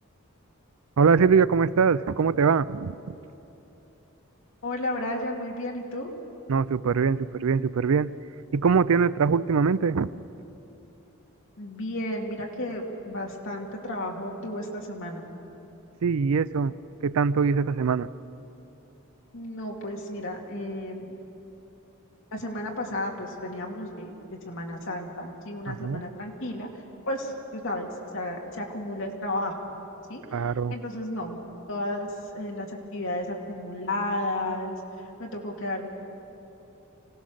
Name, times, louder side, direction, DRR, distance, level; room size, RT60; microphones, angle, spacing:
voice 1, 1.0-3.1 6.5-8.1 8.5-10.1 16.0-16.7 17.0-18.1 25.7-26.0 30.3-30.7, right 5 dB, 90° right, 17 dB, 0.5 m, -22 dB
voice 2, 4.6-6.1 11.6-15.2 19.3-21.1 22.3-24.1 24.4-29.5 30.1-30.4 30.7-31.4 31.7-34.8 35.2-35.9, left 1 dB, 65° left, 0 dB, 2.5 m, -33 dB
25.5 x 17.0 x 6.4 m, 3.0 s
head